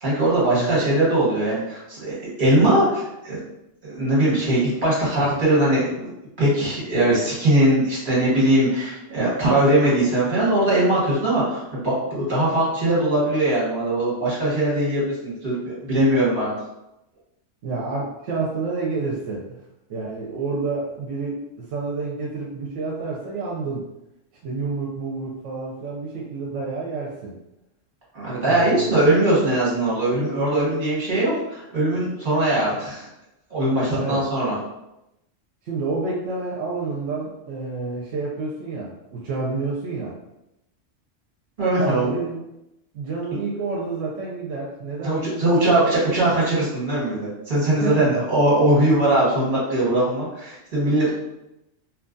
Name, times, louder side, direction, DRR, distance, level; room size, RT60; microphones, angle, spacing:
voice 1, 0.0-3.4 3.8-6.1 6.4-16.5 28.1-33.0 33.5-34.5 41.6-42.2 45.0-51.1, right 1 dB, 45° right, -8 dB, 1.4 m, -21 dB
voice 2, 17.6-19.6 19.9-23.9 24.4-27.3 28.4-29.0 33.9-34.2 35.6-40.1 41.8-42.4 42.9-45.9 47.7-48.2, right 3 dB, 80° right, -4 dB, 0.9 m, -29 dB
2.8 x 2.3 x 2.5 m, 0.88 s
omnidirectional pair, 1.3 m